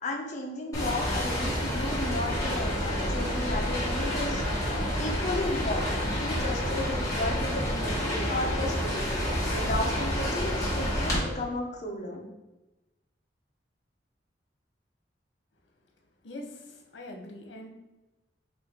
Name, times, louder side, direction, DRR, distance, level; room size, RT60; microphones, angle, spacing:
voice 1, 0.0-4.4 5.0-12.2, left 2 dB, 40° left, 0 dB, 0.8 m, -34 dB
sound 1, 0.7-11.2, equal, 20° left, 1.4 m, -29 dB
voice 2, 16.2-17.7, left 1 dB, 85° left, 2 dB, 0.9 m, -43 dB
4.9 x 2.6 x 3.8 m, 1.0 s
head